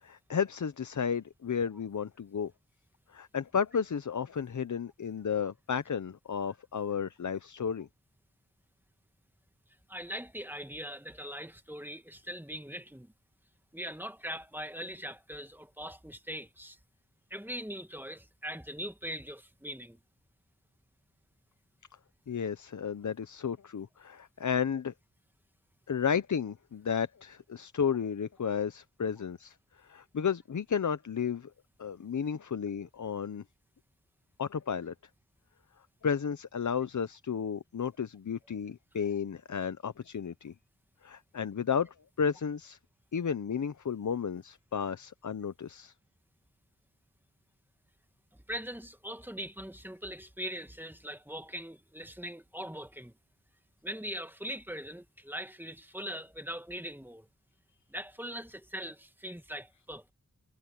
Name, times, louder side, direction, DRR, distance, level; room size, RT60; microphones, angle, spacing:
voice 1, 0.0-2.5 3.1-7.9 22.3-24.9 25.9-29.6 29.8-31.5 31.8-33.4 34.4-34.9 36.0-40.5 41.0-42.8 43.1-45.9, left 7 dB, 75° left, 0.7 m, -33 dB
voice 2, 9.9-13.1 13.7-16.8 17.3-20.0 48.5-53.1 53.8-57.3 57.9-60.1, equal, 5° right, 1.5 m, -41 dB
wide cardioid pair, 70°, 30 cm